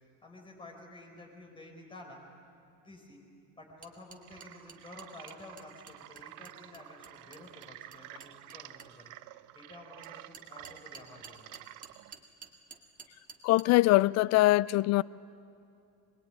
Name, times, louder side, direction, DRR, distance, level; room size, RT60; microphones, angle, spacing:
voice 1, 0.2-2.2 2.8-3.2 3.6-9.1 9.5-11.5, left 2 dB, 15° left, 0 dB, 5.3 m, -51 dB
sound 1, 3.8-8.9 10.0-13.6, right 6 dB, 25° right, 2.1 m, -51 dB
sound 2, 4.2-12.1, right 16 dB, 60° right, 0.7 m, -50 dB
voice 2, 13.4-15.0, left 18 dB, 50° left, 20 dB, 0.5 m, -23 dB
24.0 x 21.0 x 9.4 m, 2.6 s
cardioid pair, 125°, 34 cm